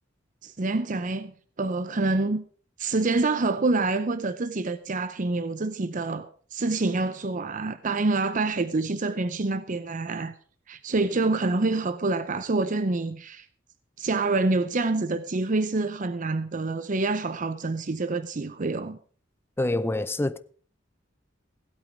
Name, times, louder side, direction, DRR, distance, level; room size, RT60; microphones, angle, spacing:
voice 1, 0.4-1.3 1.6-2.4 2.8-10.3 10.7-13.5 14.0-19.0, right 3 dB, 45° right, 0.6 m, -27 dB
voice 2, 19.6-20.4, left 2 dB, 10° left, 0.5 m, -26 dB
16.0 x 8.5 x 4.9 m
head